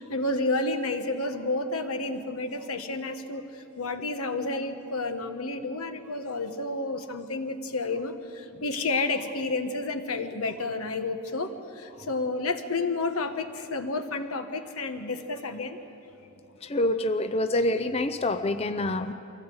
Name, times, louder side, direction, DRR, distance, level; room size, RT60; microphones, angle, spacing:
voice 1, 0.0-3.4 3.8-8.1 8.6-15.8, left 3 dB, 85° left, 7 dB, 1.4 m, -30 dB
voice 2, 16.7-19.1, left 1 dB, 30° left, 9 dB, 0.5 m, -26 dB
24.0 x 16.0 x 7.9 m, 2.9 s
head